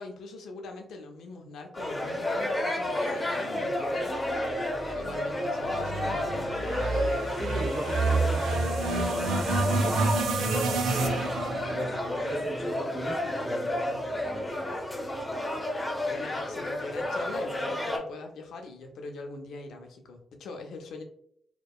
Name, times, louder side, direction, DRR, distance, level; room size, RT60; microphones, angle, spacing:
voice 1, 0.0-6.7 16.1-21.0, left 3 dB, 80° left, 4 dB, 0.4 m, -42 dB
sound 1, 1.7-18.0, left 1 dB, 25° left, 0.8 m, -31 dB
sound 2, 4.8-13.1, right 3 dB, 85° right, 0.4 m, -30 dB
voice 2, 7.3-10.1 10.4-11.2 11.7-11.9 12.2-14.8, right 1 dB, 25° right, -1 dB, 1.3 m, -38 dB
2.7 x 2.1 x 2.3 m, 0.69 s
supercardioid pair, 50°, 0 cm